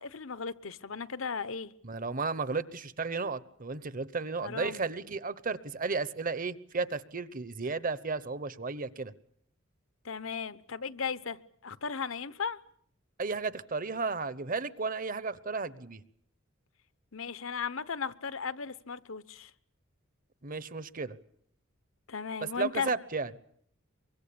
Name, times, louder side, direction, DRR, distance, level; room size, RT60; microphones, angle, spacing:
voice 1, 0.0-1.7 4.4-4.8 10.0-12.6 17.1-19.5 22.1-22.9, left 5 dB, 75° left, 1.0 m, -36 dB
voice 2, 1.8-9.1 13.2-16.0 20.4-21.2 22.4-23.4, right 4 dB, 40° right, 1.1 m, -34 dB
24.5 x 23.5 x 8.7 m
head